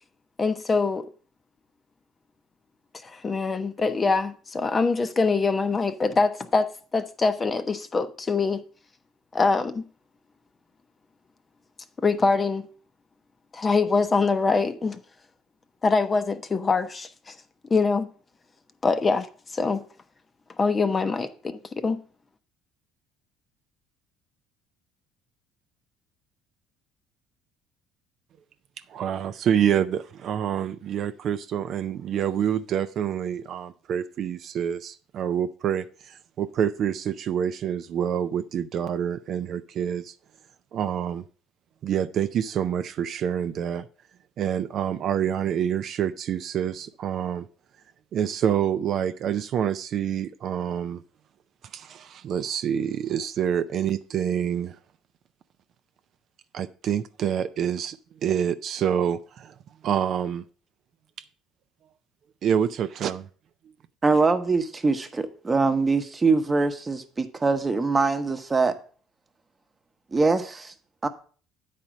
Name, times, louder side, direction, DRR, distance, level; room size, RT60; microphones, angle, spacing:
voice 1, 0.4-1.1 3.0-8.6 9.3-9.8 12.0-12.7 13.5-15.0 15.8-17.3 17.7-18.1 18.8-19.3 19.5-19.8 20.6-22.0, left 4 dB, 25° left, 0.7 m, -24 dB
voice 2, 28.9-40.1 40.7-41.3 41.8-43.9 44.4-47.5 48.1-51.0 51.7-54.8 56.5-59.5 59.8-60.4 62.4-63.3, right 9 dB, 55° right, 0.4 m, -27 dB
voice 3, 64.0-68.7 70.1-70.7 71.0-71.1, right 3 dB, 20° right, 1.0 m, -23 dB
8.9 x 4.3 x 6.2 m
cardioid pair, 105°, 0 cm